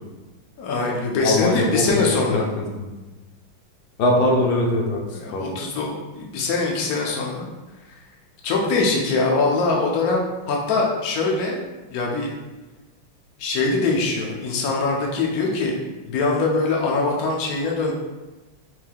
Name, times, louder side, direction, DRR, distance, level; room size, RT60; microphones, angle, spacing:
voice 1, 0.6-2.5 5.1-7.5 7.9-8.0 8.4-11.6 11.9-12.3 13.4-15.8 16.1-17.9, left 3 dB, 90° left, -2 dB, 0.8 m, -23 dB
voice 2, 1.2-2.4 2.7-2.9 4.0-5.0 5.3-5.4, left 1 dB, 65° left, -1 dB, 1.0 m, -21 dB
4.6 x 3.6 x 2.2 m, 1.2 s
omnidirectional pair, 2.3 m